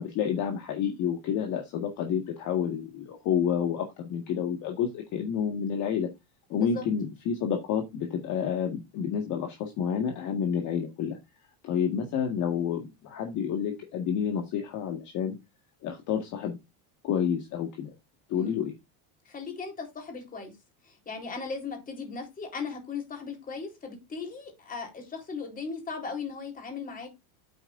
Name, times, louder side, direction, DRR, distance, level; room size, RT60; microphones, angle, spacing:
voice 1, 0.0-6.1 6.5-11.2 11.6-15.4 15.8-16.6 17.0-17.9 18.3-18.7, left 8 dB, 40° left, 1.8 m, -29 dB
voice 2, 6.5-6.8 18.3-18.6 19.3-20.5 20.8-27.1, left 5 dB, 20° left, 3.8 m, -37 dB
9.0 x 8.9 x 2.6 m
cardioid pair, 170°, 46 cm